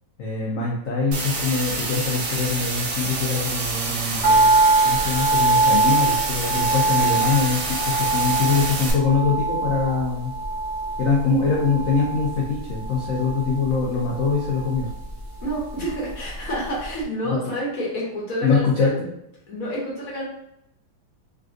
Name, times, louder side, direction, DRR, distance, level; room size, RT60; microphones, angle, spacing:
voice 1, 0.2-4.6 4.8-10.3 11.0-14.9 17.3-17.4 18.4-18.9, left 4 dB, 80° left, -4 dB, 0.7 m, -23 dB
sound 1, 1.1-8.9, right 2 dB, 65° right, 1.3 m, -28 dB
sound 2, 4.2-16.5 16.8-16.9, right 3 dB, 35° left, 0.8 m, -23 dB
voice 2, 15.4-18.9 19.5-20.2, equal, 55° left, -4 dB, 1.2 m, -29 dB
3.5 x 2.4 x 2.5 m, 0.79 s
omnidirectional pair, 2.1 m